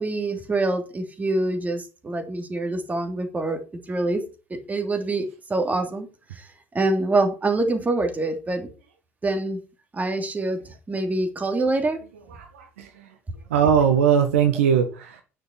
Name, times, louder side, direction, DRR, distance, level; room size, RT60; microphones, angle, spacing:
voice 1, 0.0-4.2 4.5-6.5 6.7-8.7 9.2-9.6 9.9-12.0, right 2 dB, 20° right, 5 dB, 2.8 m, -25 dB
voice 2, 12.3-13.1 13.5-15.2, right 7 dB, 70° right, 7 dB, 1.3 m, -21 dB
9.9 x 6.7 x 5.8 m, 0.33 s
figure-of-eight pair, 60°, 8 cm